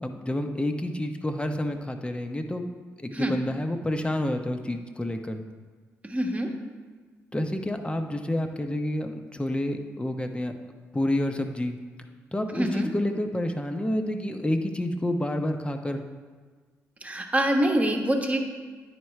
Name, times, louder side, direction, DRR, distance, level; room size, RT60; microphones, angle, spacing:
voice 1, 0.0-2.6 3.0-5.4 7.3-10.5 10.9-11.8 12.3-16.0, left 1 dB, 15° left, 6 dB, 0.8 m, -29 dB
voice 2, 6.0-6.5 12.6-12.9 17.0-18.4, right 1 dB, 20° right, 2 dB, 1.2 m, -25 dB
9.9 x 4.5 x 3.2 m, 1.5 s
hypercardioid pair, 40°, 7 cm